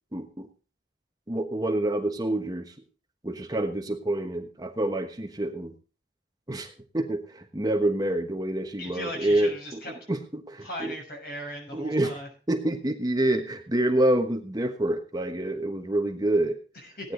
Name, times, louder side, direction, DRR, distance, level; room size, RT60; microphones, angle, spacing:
voice 1, 0.1-0.5 1.3-2.7 3.2-5.7 6.5-9.8 10.1-10.9 11.7-12.2 12.5-16.6 17.0-17.1, right 1 dB, 20° right, 5 dB, 1.2 m, -27 dB
voice 2, 8.8-9.9 10.6-12.3 16.7-17.1, left 1 dB, 60° left, 1 dB, 6.7 m, -38 dB
17.0 x 9.9 x 3.9 m, 0.36 s
head